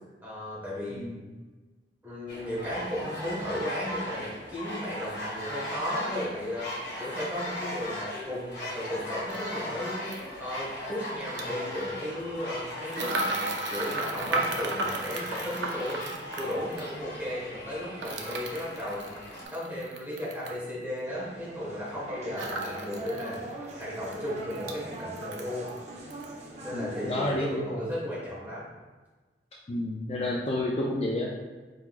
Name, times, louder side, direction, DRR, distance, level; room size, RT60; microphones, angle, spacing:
voice 1, 0.2-1.1 2.0-6.7 7.0-10.1 10.4-16.0 16.3-19.2 19.5-23.4 23.7-25.7 26.6-28.6, left 1 dB, 10° right, -8 dB, 1.4 m, -35 dB
voice 2, 0.9-1.2 26.7-27.8 29.7-31.3, left 1 dB, 35° left, -3 dB, 0.4 m, -30 dB
sound 1, 2.3-19.4, equal, 80° left, 1.4 m, -38 dB
sound 2, 9.3-9.4 10.1-10.3 11.2-11.4 12.9-16.9 18.0-20.6 22.4-23.4 23.7-23.8 24.1-24.8 25.2-25.8 26.1-26.3, right 2 dB, 85° right, 0.5 m, -34 dB
sound 3, 21.1-27.3, right 1 dB, 40° right, 0.6 m, -40 dB
4.4 x 3.8 x 2.4 m, 1.3 s
head